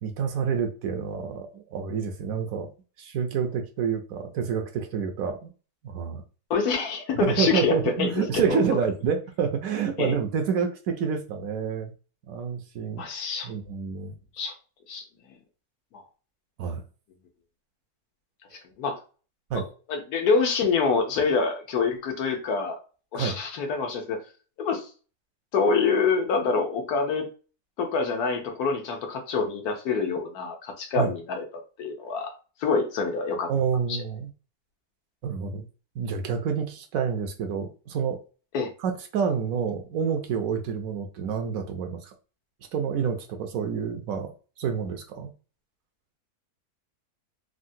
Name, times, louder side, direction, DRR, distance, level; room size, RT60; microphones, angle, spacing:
voice 1, 0.0-2.7 3.0-5.5 5.8-6.2 7.2-11.9 12.3-13.0 13.4-14.1 16.6-16.8 19.5-19.7 23.1-23.4 31.0-31.1 33.5-34.3 35.2-35.7 36.0-38.2 38.8-42.1 42.7-45.3, right 6 dB, 75° right, 1.0 m, -28 dB
voice 2, 6.5-8.6 10.0-10.1 13.0-13.5 14.4-14.5 14.9-15.0 15.9-16.0 18.8-19.0 19.9-22.8 23.1-24.2 24.6-24.8 25.5-27.3 27.8-32.3 32.6-33.5 33.9-34.0 38.5-38.7, left 5 dB, 80° left, 1.3 m, -26 dB
3.7 x 2.1 x 2.6 m
omnidirectional pair, 1.6 m